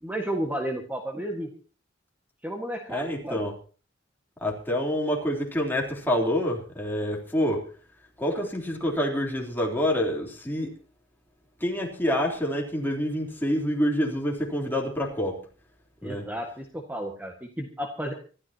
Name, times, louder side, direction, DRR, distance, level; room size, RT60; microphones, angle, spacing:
voice 1, 0.0-1.5 2.4-3.5 16.0-18.1, right 1 dB, 10° right, 1 dB, 1.7 m, -32 dB
voice 2, 2.9-3.5 4.4-7.6 8.2-10.7 11.6-15.4 16.0-16.2, equal, 10° left, -1 dB, 3.5 m, -27 dB
26.0 x 13.5 x 2.9 m, 0.39 s
head